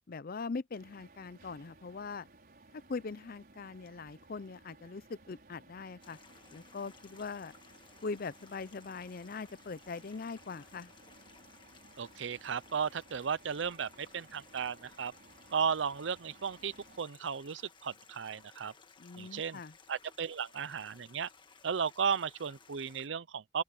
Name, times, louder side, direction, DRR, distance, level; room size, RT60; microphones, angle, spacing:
voice 1, 0.1-2.3 2.7-6.2 6.5-7.5 8.0-10.9 19.0-19.7, left 4 dB, 50° left, 0.5 m, -41 dB
sound 1, 0.7-17.0, right 2 dB, 50° right, 5.2 m, -60 dB
Stream, 6.0-23.1, left 5 dB, 25° left, 1.5 m, -59 dB
voice 2, 12.0-15.1 15.5-18.7 19.2-19.6 19.9-21.3 21.6-23.6, right 6 dB, 70° right, 0.6 m, -35 dB
open air
head